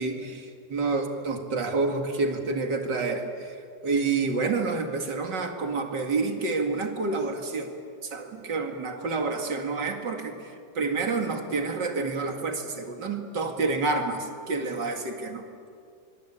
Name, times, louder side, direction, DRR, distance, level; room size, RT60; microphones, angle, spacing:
voice 1, 0.0-7.8 8.0-15.5, right 3 dB, 90° right, 4 dB, 2.9 m, -29 dB
25.5 x 24.5 x 8.8 m, 2.3 s
omnidirectional pair, 1.8 m